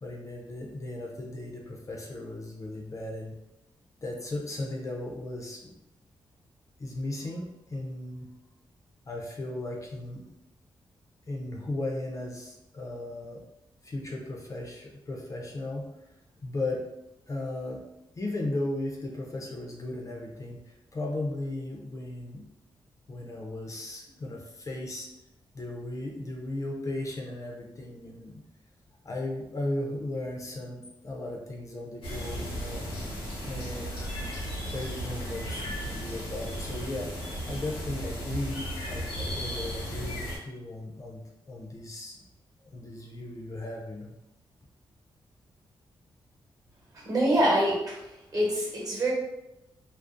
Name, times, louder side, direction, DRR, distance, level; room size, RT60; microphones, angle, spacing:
voice 1, 0.0-3.3 4.0-5.7 6.8-8.3 9.1-10.2 11.3-13.4 13.8-15.9 16.4-16.8 17.3-17.9 18.2-22.4 23.1-25.1 25.5-28.4 29.0-32.9 33.5-34.3 34.7-41.2 41.5-42.2 42.6-44.1, left 2 dB, 35° left, 0 dB, 0.5 m, -36 dB
sound 1, 32.0-40.4, equal, 90° left, 0.9 m, -35 dB
voice 2, 47.0-48.0 48.3-49.1, right 1 dB, 40° right, -3 dB, 0.9 m, -25 dB
2.5 x 2.0 x 2.4 m, 0.90 s
cardioid pair, 90°, 9 cm